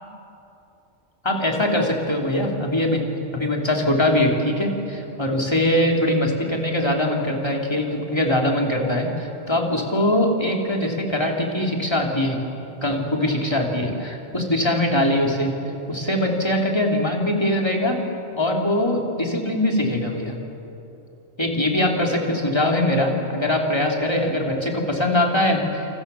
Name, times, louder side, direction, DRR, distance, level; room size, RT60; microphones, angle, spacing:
voice 1, 1.2-3.1 3.3-12.4 12.8-15.5 15.9-18.0 18.3-20.4 21.4-25.9, left 1 dB, 20° left, 0 dB, 3.4 m, -22 dB
29.5 x 28.5 x 7.0 m, 2.8 s
omnidirectional pair, 1.3 m